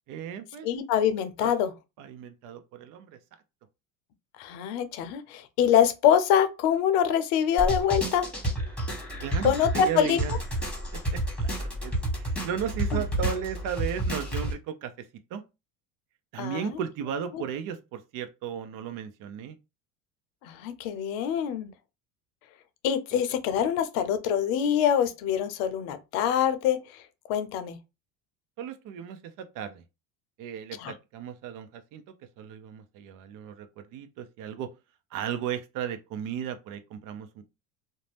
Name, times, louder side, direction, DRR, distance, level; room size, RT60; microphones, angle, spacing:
voice 1, 0.1-0.7 1.4-1.5 2.0-3.2 9.2-10.4 10.9-15.4 16.3-19.6 28.6-29.8 30.4-32.0 32.4-34.7 35.1-37.4, right 8 dB, 50° right, 0.6 m, -35 dB
voice 2, 0.6-1.7 4.4-8.3 9.4-10.2 12.9-13.0 16.4-16.8 17.3-17.4 20.4-21.7 22.8-27.0 27.3-27.8 30.8-30.9, left 9 dB, 70° left, 0.7 m, -25 dB
sound 1, 7.6-14.5, right 1 dB, 5° left, 1.3 m, -30 dB
2.6 x 2.1 x 3.2 m
supercardioid pair, 100°, 42 cm